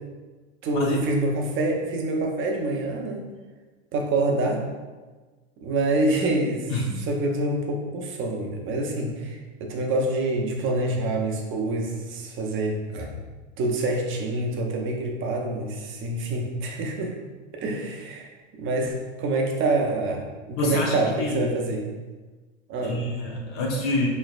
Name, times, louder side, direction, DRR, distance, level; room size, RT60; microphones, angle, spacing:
voice 1, 0.6-3.3 3.9-4.6 5.6-6.7 7.0-13.1 13.6-17.1 17.5-18.3 18.6-21.8 22.7-23.0, right 2 dB, 35° right, 1 dB, 0.7 m, -26 dB
voice 2, 6.7-7.1 20.6-21.5 22.8-24.1, left 2 dB, 50° left, -2 dB, 0.8 m, -27 dB
4.1 x 3.2 x 2.4 m, 1.3 s
hypercardioid pair, 105°, 34 cm